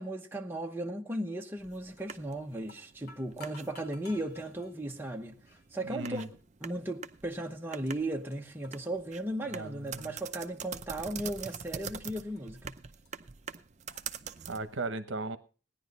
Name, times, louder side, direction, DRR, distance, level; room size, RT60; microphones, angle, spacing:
voice 1, 0.0-5.4 5.7-12.8, right 1 dB, 10° right, 0.9 m, -36 dB
sound 1, 1.6-14.8, right 7 dB, 35° right, 0.5 m, -45 dB
sound 2, 2.0-2.3 2.6-4.7 5.5-5.7 6.4-6.5 7.3-7.4 7.6-8.4 8.6-10.2 10.5-11.0 11.5-12.6 13.1-13.2 13.5-13.6 13.9-14.0, left 3 dB, 50° left, 2.5 m, -55 dB
voice 2, 5.8-6.3 9.5-10.1 14.5-15.4, right 2 dB, 65° right, 0.9 m, -36 dB
16.5 x 10.5 x 4.1 m
head